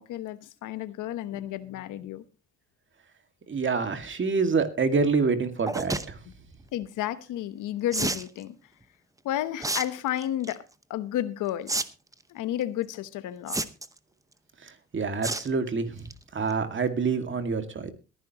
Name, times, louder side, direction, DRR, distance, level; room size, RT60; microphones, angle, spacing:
voice 1, 0.0-2.2 6.7-8.6 9.2-10.6 10.9-11.9 12.3-13.6, left 12 dB, 85° left, 1.1 m, -32 dB
voice 2, 3.5-6.2 14.6-16.1 16.3-17.9, right 4 dB, 40° right, 2.2 m, -27 dB
sound 1, 5.7-6.1 7.9-8.3 9.6-9.8 10.2-10.5 11.7-11.8 12.1-12.2 13.5-14.0 15.2-15.5 15.9-16.1 16.5-16.6 16.8-16.9, right 2 dB, 10° right, 0.9 m, -29 dB
21.5 x 10.5 x 3.0 m
cardioid pair, 90°, 30 cm